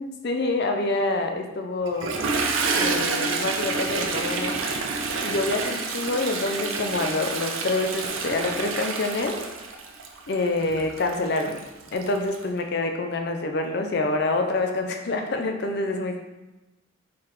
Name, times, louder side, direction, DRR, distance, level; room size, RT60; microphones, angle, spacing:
voice 1, 0.0-2.1 2.8-4.6 5.2-9.4 10.3-11.6 11.9-16.2, left 2 dB, 50° left, 5 dB, 0.5 m, -26 dB
Toilet flush, 1.9-12.4, right 4 dB, 70° right, 0.5 m, -28 dB
4.6 x 3.6 x 3.2 m, 1.0 s
head